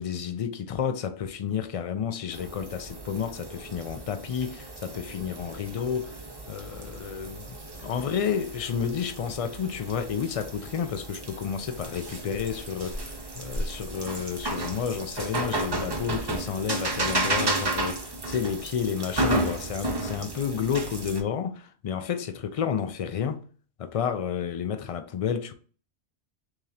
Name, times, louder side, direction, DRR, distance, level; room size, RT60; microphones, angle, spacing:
voice 1, 0.0-6.2 6.5-23.4 23.8-25.5, left 7 dB, 70° left, 0.3 m, -31 dB
sound 1, 2.3-21.2, right 2 dB, 30° right, 0.5 m, -33 dB
3.6 x 3.2 x 2.7 m
omnidirectional pair, 1.1 m